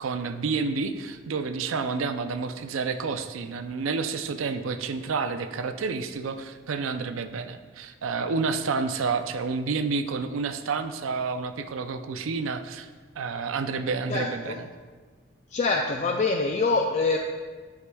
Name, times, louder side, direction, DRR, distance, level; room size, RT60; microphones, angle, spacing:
voice 1, 0.0-12.9 13.2-14.7, right 4 dB, 85° right, 9 dB, 0.5 m, -29 dB
voice 2, 14.1-14.6 15.5-17.2, left 3 dB, 35° left, 2 dB, 0.4 m, -25 dB
11.0 x 4.8 x 2.3 m, 1.5 s
head